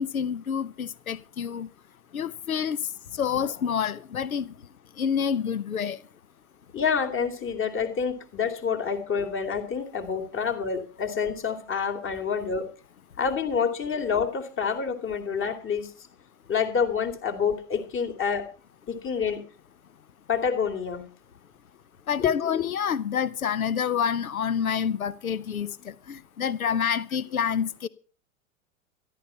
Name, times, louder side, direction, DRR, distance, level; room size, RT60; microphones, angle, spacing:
voice 1, 0.0-1.7 2.1-2.8 3.1-4.5 5.0-6.0 22.1-27.9, left 7 dB, 90° left, 0.8 m, -28 dB
voice 2, 6.7-12.7 13.2-15.9 16.5-18.5 18.9-19.5 20.3-21.1 22.2-22.6, left 6 dB, 30° left, 2.7 m, -28 dB
13.5 x 11.5 x 5.6 m
hypercardioid pair, 95°, 41 cm